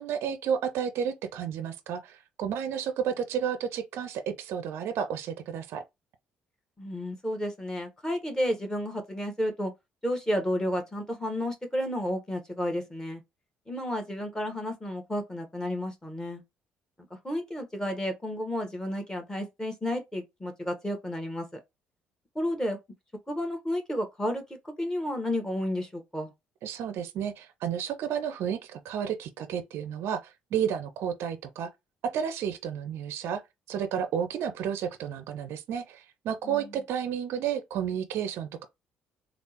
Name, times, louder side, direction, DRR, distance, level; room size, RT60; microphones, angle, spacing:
voice 1, 0.0-5.8 26.6-31.7 32.1-33.4 33.7-38.7, right 8 dB, 60° right, 0.4 m, -32 dB
voice 2, 6.8-9.7 10.0-13.2 13.7-16.4 17.2-21.5 22.3-22.8 23.3-24.4 24.8-26.3 36.4-36.6, equal, 15° left, 1.1 m, -31 dB
3.4 x 2.0 x 2.8 m
hypercardioid pair, 50°, 5 cm